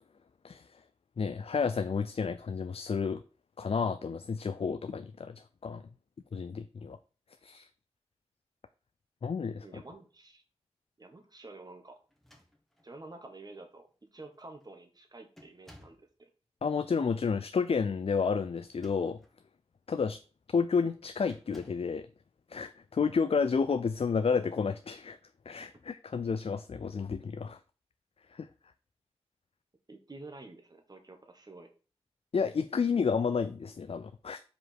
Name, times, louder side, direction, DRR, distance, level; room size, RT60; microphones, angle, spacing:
voice 1, 0.4-0.8 1.2-3.2 3.6-5.8 6.3-7.0 7.4-7.7 9.2-9.8 16.6-19.2 19.9-20.2 20.5-22.1 22.5-25.2 25.5-27.6 28.3-28.5 32.3-34.4, left 5 dB, 65° left, 0.4 m, -31 dB
voice 2, 9.6-10.4 11.0-12.0 12.8-16.3 29.9-31.7, right 2 dB, 35° right, 1.6 m, -49 dB
sound 1, 12.1-13.0 13.9-14.0 14.3-14.7 15.4-16.1 18.5-19.4 19.9-20.2 21.3-22.0, left 1 dB, ahead, 1.4 m, -57 dB
5.2 x 4.9 x 6.0 m
wide cardioid pair, 80°, 11 cm